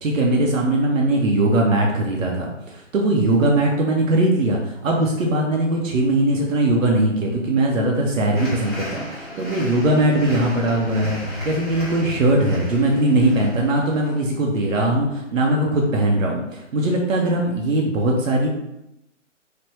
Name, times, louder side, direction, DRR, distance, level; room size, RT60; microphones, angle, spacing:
voice 1, 0.0-18.5, right 1 dB, 85° right, -1 dB, 0.7 m, -20 dB
sound 1, 8.3-14.2, left 1 dB, 20° right, 0.7 m, -34 dB
3.3 x 2.1 x 2.9 m, 0.87 s
hypercardioid pair, 170°, 38 cm